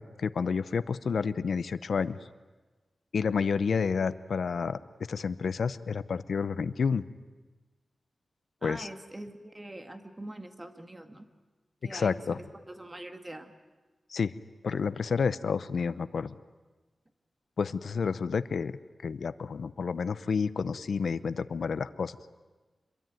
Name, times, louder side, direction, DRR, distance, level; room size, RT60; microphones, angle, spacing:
voice 1, 0.0-2.2 3.1-4.8 5.1-7.1 8.6-8.9 11.9-12.4 14.1-14.3 14.6-16.4 17.6-18.7 19.0-22.2, left 5 dB, 80° left, 14 dB, 0.8 m, -30 dB
voice 2, 8.6-11.3 11.8-13.5, right 1 dB, 20° right, 7 dB, 2.1 m, -43 dB
26.0 x 23.0 x 9.2 m, 1.2 s
wide cardioid pair, 90°, 0 cm